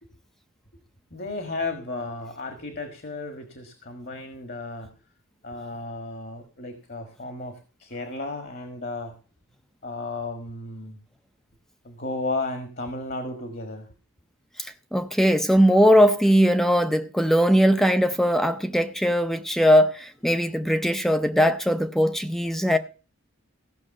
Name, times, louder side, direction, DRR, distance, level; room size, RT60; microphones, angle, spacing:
voice 1, 1.1-4.9 5.4-9.1 9.8-11.0 11.8-13.9, left 2 dB, 45° left, 1.6 m, -34 dB
voice 2, 14.6-22.8, equal, ahead, 0.6 m, -20 dB
15.5 x 6.4 x 6.4 m
head